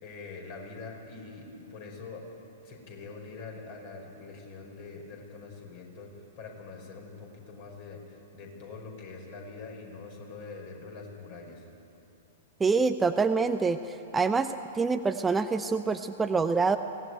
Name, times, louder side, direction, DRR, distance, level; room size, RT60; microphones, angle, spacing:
voice 1, 0.0-2.2 2.6-11.7, left 4 dB, 45° left, 1 dB, 5.1 m, -44 dB
voice 2, 12.6-13.8 14.1-16.8, right 4 dB, 10° right, 8 dB, 0.6 m, -26 dB
22.5 x 17.5 x 9.3 m, 2.9 s
figure-of-eight pair, 105°, 0 cm